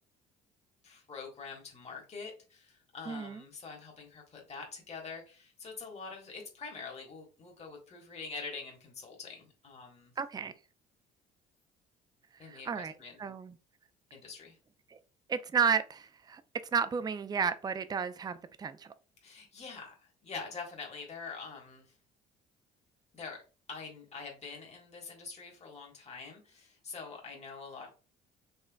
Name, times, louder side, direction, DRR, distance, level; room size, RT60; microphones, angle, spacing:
voice 1, 0.8-10.1 12.4-13.2 14.1-14.6 19.2-22.0 23.1-23.4 23.7-27.9, left 4 dB, 35° left, 1.5 m, -45 dB
voice 2, 3.1-3.4 10.2-10.5 12.3-12.9 13.2-13.5 14.9-15.0 15.3-16.4 16.7-18.9, right 6 dB, 20° right, 0.4 m, -32 dB
4.4 x 3.1 x 2.3 m
hypercardioid pair, 65°, 19 cm